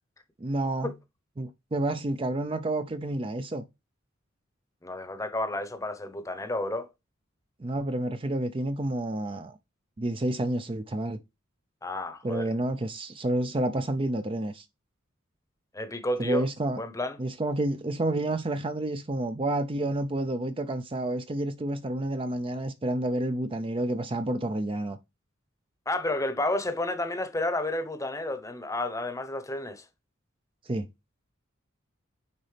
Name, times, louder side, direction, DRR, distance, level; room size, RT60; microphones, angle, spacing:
voice 1, 0.4-0.9 1.4-3.6 7.6-9.6 10.0-11.2 12.2-14.6 16.2-16.8 17.2-25.0 30.7-30.9, right 1 dB, 25° right, 0.5 m, -29 dB
voice 2, 4.8-6.9 11.8-12.5 15.7-16.5 16.8-17.2 25.9-29.8, left 1 dB, 15° left, 0.9 m, -31 dB
9.5 x 4.0 x 3.3 m
head